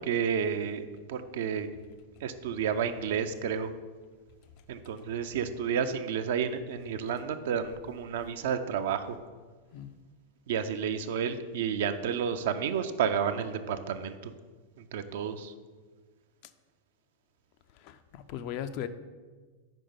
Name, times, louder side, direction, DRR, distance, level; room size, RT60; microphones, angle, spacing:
voice 1, 0.0-1.7 2.2-3.7 4.7-9.2 10.5-14.3 14.8-15.5, right 7 dB, 55° right, 9 dB, 0.4 m, -31 dB
voice 2, 17.8-18.9, left 10 dB, 45° left, 10 dB, 0.4 m, -38 dB
5.3 x 4.9 x 5.5 m, 1.4 s
figure-of-eight pair, 90°, 0 cm